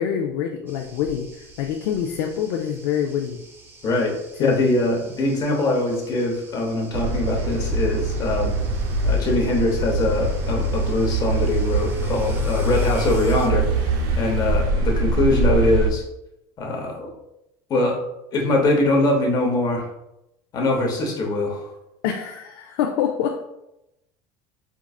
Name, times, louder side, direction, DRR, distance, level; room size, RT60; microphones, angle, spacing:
voice 1, 0.0-3.4 4.4-4.7 22.0-23.4, left 8 dB, 80° left, 3 dB, 0.4 m, -26 dB
sound 1, 0.7-13.5, right 1 dB, 20° right, 0.7 m, -43 dB
voice 2, 3.8-8.5 9.0-13.9 14.2-16.0 16.6-17.1 17.7-18.0 18.3-19.9 20.5-21.7, left 2 dB, 35° left, 0 dB, 0.8 m, -22 dB
sound 2, 6.9-15.9, right 2 dB, 75° right, 0.5 m, -23 dB
4.5 x 2.5 x 2.3 m, 0.86 s
cardioid pair, 145°, 12 cm